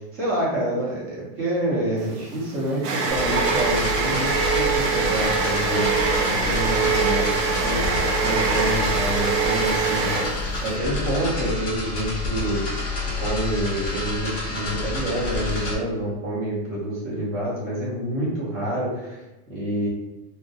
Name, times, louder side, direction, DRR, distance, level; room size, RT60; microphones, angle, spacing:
voice 1, 0.1-10.1 10.6-12.6 13.2-19.2 19.5-19.9, right 1 dB, 25° right, -5 dB, 0.8 m, -27 dB
sound 1, 2.0-10.7, right 4 dB, 75° right, 0.7 m, -23 dB
sound 2, 3.1-15.8, left 3 dB, 20° left, 0.6 m, -29 dB
2.1 x 2.1 x 2.7 m, 1.1 s
supercardioid pair, 155°, 48 cm